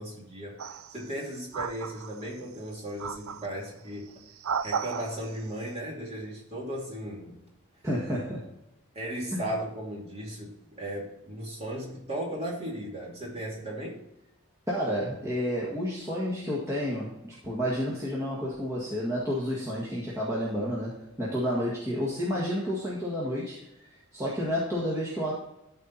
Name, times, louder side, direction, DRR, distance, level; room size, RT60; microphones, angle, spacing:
voice 1, 0.0-4.2 4.6-7.4 8.9-14.0, right 1 dB, 30° right, -3 dB, 2.6 m, -36 dB
sound 1, 0.6-1.1 1.5-2.4 3.0-3.6 4.2-5.4, right 6 dB, 90° right, 0.5 m, -34 dB
voice 2, 7.8-8.5 9.3-9.4 14.7-23.6 24.1-25.3, equal, 15° right, -6 dB, 1.7 m, -30 dB
13.0 x 4.5 x 4.1 m, 0.84 s
head